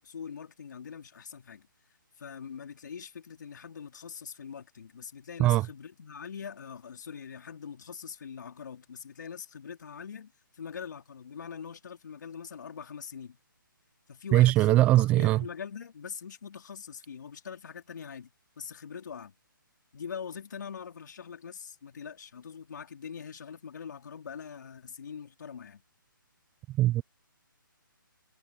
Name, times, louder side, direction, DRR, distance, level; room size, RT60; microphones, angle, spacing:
voice 1, 0.0-1.7 2.2-13.4 14.1-19.3 19.9-25.8, left 7 dB, 60° left, 4.1 m, -43 dB
voice 2, 14.3-15.4 26.8-27.0, right 15 dB, 10° right, 0.4 m, -21 dB
hypercardioid pair, 155°, 12 cm